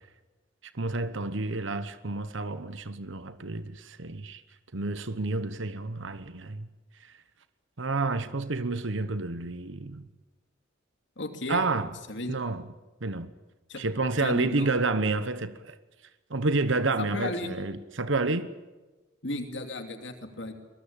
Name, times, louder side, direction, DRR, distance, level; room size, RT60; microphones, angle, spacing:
voice 1, 0.8-4.4 4.7-6.7 7.0-7.1 7.8-10.1 11.5-11.9 12.3-12.7 13.0-13.3 13.8-15.8 16.3-18.5, right 3 dB, 65° right, 1.1 m, -29 dB
voice 2, 11.2-11.6 12.1-12.4 13.7-13.8 14.2-14.7 17.0-17.5 19.2-20.5, left 2 dB, 60° left, 2.8 m, -34 dB
23.5 x 22.0 x 8.8 m
head